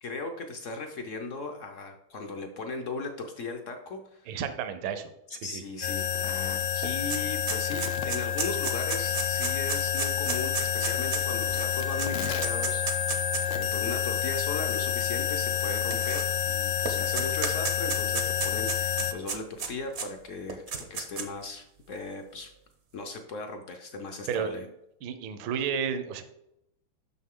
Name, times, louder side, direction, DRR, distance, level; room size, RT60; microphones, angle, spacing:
voice 1, 0.0-4.4 5.3-20.6 20.9-22.5 22.9-24.7, left 3 dB, 65° left, 4 dB, 0.7 m, -38 dB
voice 2, 4.3-5.6 13.6-13.8 24.3-24.5 25.0-26.2, right 7 dB, 75° right, 9 dB, 1.5 m, -32 dB
sound 1, 5.8-19.1, left 9 dB, 85° left, 1.6 m, -29 dB
sound 2, 6.3-6.4 6.6-13.6 14.3-14.4 15.5-16.5 16.9-20.1 20.5-21.4, right 6 dB, 55° right, 0.7 m, -34 dB
6.4 x 6.4 x 3.7 m, 0.83 s
omnidirectional pair, 2.3 m